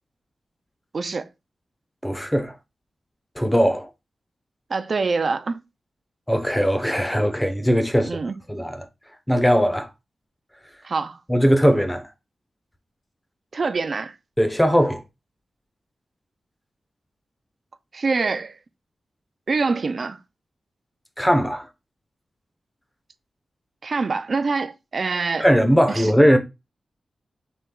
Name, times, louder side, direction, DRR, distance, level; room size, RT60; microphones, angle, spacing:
voice 1, 0.9-1.3 4.7-5.6 8.0-8.3 10.8-11.2 13.5-14.2 17.9-18.6 19.5-20.2 23.8-25.5 25.9-26.1, right 4 dB, 50° right, 0.4 m, -25 dB
voice 2, 2.0-2.5 3.4-3.9 6.3-8.2 8.5-8.9 9.3-9.9 11.3-12.0 14.4-15.0 21.2-21.7 25.4-26.4, equal, 5° left, 0.7 m, -19 dB
4.4 x 3.0 x 3.7 m
wide cardioid pair, 150°, 0 cm